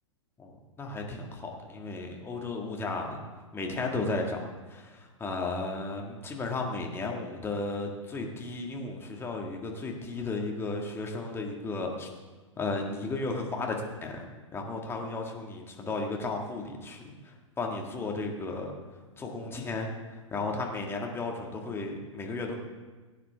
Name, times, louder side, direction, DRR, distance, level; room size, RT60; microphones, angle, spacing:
voice 1, 0.4-3.2 3.5-12.1 12.6-13.8 14.0-14.3 14.5-18.7 19.2-19.9 20.3-22.5, left 3 dB, 15° left, 1 dB, 1.9 m, -34 dB
17.0 x 9.4 x 3.5 m, 1.3 s
figure-of-eight pair, 105°, 17 cm